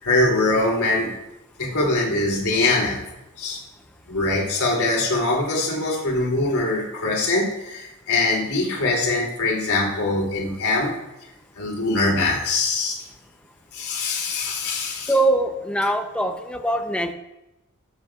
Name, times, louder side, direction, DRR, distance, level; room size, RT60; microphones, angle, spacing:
voice 1, 0.0-1.1 1.6-3.0 3.4-3.6 4.1-10.9 11.6-13.0 13.7-15.1, left 2 dB, 90° left, -3 dB, 3.3 m, -23 dB
voice 2, 15.1-17.1, right 1 dB, 5° left, 5 dB, 0.8 m, -22 dB
18.5 x 8.3 x 2.5 m, 0.97 s
head